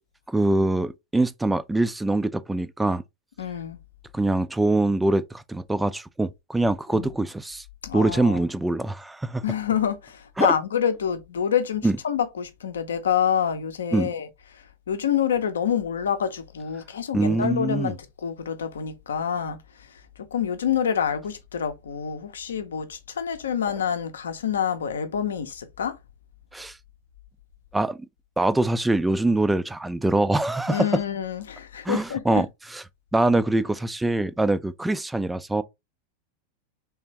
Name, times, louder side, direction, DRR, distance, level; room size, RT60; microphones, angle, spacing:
voice 1, 0.3-3.0 4.1-7.6 7.9-9.4 10.4-10.5 11.8-12.0 13.9-14.1 17.1-17.9 26.5-26.8 27.7-28.0 28.4-31.0 31.8-32.5 32.7-32.8 33.1-35.6, right 2 dB, 5° right, 0.3 m, -23 dB
voice 2, 3.4-3.8 6.9-7.1 7.8-8.4 9.4-26.0 30.7-32.4, left 8 dB, 65° left, 0.6 m, -27 dB
3.5 x 3.3 x 2.9 m
figure-of-eight pair, 90°, 0 cm